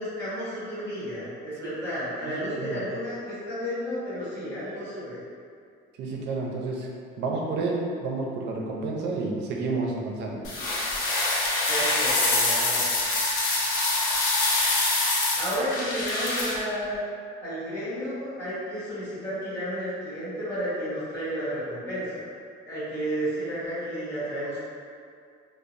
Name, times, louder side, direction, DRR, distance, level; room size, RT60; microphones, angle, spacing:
voice 1, 0.0-5.2 11.7-12.9 15.4-17.0 17.4-22.2 22.6-24.6, equal, 10° left, -15 dB, 1.2 m, -32 dB
voice 2, 2.4-2.8 6.0-6.9 7.2-10.4, right 3 dB, 60° right, -1 dB, 0.4 m, -30 dB
sound 1, 10.4-16.6, left 2 dB, 90° left, 0.6 m, -25 dB
2.8 x 2.0 x 2.5 m, 2.2 s
cardioid pair, 170°, 20 cm